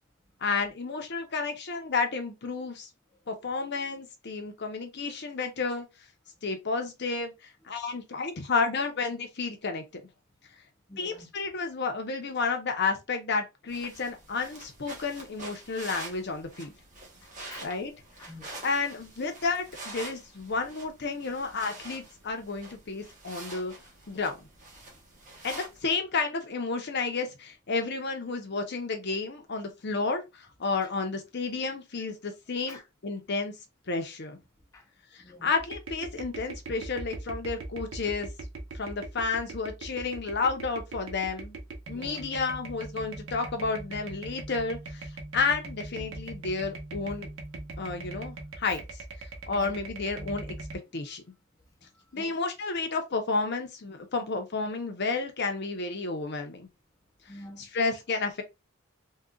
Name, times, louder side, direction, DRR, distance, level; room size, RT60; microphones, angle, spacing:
voice 1, 0.4-2.9 3.3-5.9 6.4-9.8 11.0-16.7 17.6-17.9 18.6-23.7 24.1-24.4 25.4-33.5 33.9-34.4 35.1-38.3 38.7-41.6 41.9-45.1 45.3-47.3 47.8-48.8 49.5-50.5 50.9-51.2 52.1-56.7 57.6-58.4, left 4 dB, 50° left, 0.7 m, -31 dB
voice 2, 10.9-11.3 17.2-17.7 18.2-18.6 32.7-32.8 34.7-34.9 35.2-35.5 41.9-42.2 49.5-49.7 51.8-51.9 52.1-52.4 57.3-57.7, left 2 dB, 15° left, 0.5 m, -48 dB
sound 1, 13.7-25.8, right 2 dB, 35° right, 1.0 m, -46 dB
sound 2, 35.6-50.8, right 2 dB, 65° right, 0.9 m, -41 dB
3.7 x 2.3 x 2.3 m
head